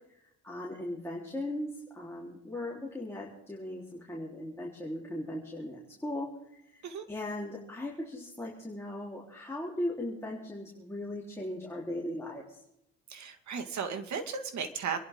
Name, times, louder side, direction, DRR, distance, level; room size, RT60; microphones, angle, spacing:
voice 1, 0.4-6.3 6.7-6.8 7.1-12.4, left 1 dB, 10° left, -4 dB, 4.0 m, -38 dB
voice 2, 13.1-15.0, right 6 dB, 70° right, 7 dB, 2.1 m, -35 dB
27.0 x 11.5 x 3.8 m, 0.78 s
cardioid pair, 90°, 30 cm